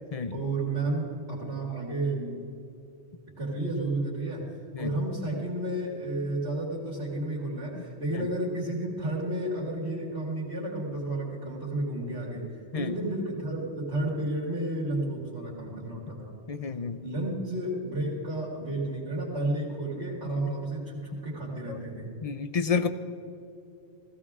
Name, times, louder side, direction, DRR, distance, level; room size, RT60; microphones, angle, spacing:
voice 1, 0.3-2.3 3.4-4.5 4.8-12.5 12.7-16.3 17.0-22.2, right 2 dB, 80° right, -6 dB, 2.7 m, -32 dB
voice 2, 16.5-17.0 21.7-21.8 22.2-22.9, left 5 dB, 40° left, 11 dB, 0.6 m, -30 dB
16.5 x 16.0 x 3.6 m, 2.6 s
omnidirectional pair, 1.1 m